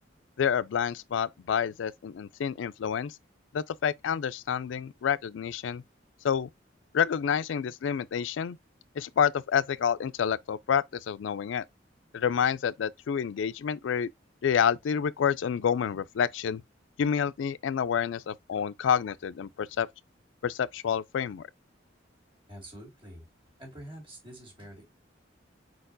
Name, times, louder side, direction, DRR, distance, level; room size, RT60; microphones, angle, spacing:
voice 1, 0.4-3.1 3.5-5.8 6.2-6.5 6.9-8.6 9.0-11.6 12.1-14.1 14.4-16.6 17.0-19.9 20.4-21.5, left 7 dB, 80° left, 0.3 m, -28 dB
voice 2, 22.5-23.2 23.6-24.8, right 1 dB, 30° right, 2.2 m, -46 dB
4.6 x 4.3 x 2.5 m
head